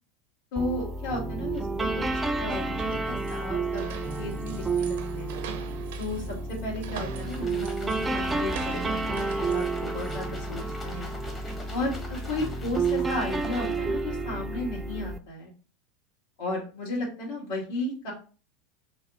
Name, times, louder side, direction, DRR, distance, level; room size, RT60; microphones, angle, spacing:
voice 1, 0.5-2.0 2.4-5.4 6.0-11.1 11.7-15.5 16.4-18.1, left 2 dB, 65° left, -4 dB, 1.7 m, -34 dB
sound 1, 0.6-15.2, right 3 dB, 15° right, 0.3 m, -31 dB
sound 2, 2.0-12.4, right 8 dB, 70° right, 0.5 m, -45 dB
sound 3, 7.1-14.0, left 2 dB, 20° left, 0.9 m, -44 dB
3.3 x 2.1 x 3.6 m, 0.37 s
hypercardioid pair, 105°, 0 cm